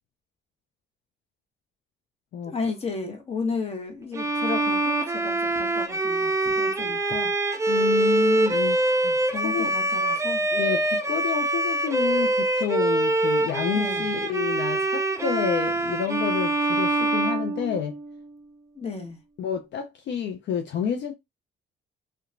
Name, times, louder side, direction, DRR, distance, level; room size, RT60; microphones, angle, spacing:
voice 1, 2.4-7.4 9.3-10.4 13.7-14.1 18.7-19.2, left 4 dB, 30° left, 1.0 m, -33 dB
Bowed string instrument, 4.1-18.2, right 2 dB, 15° right, 0.5 m, -24 dB
voice 2, 7.7-9.2 9.4-9.7 10.5-18.0 19.4-21.1, left 8 dB, 65° left, 0.5 m, -29 dB
2.8 x 2.2 x 2.5 m
cardioid pair, 90°, 20 cm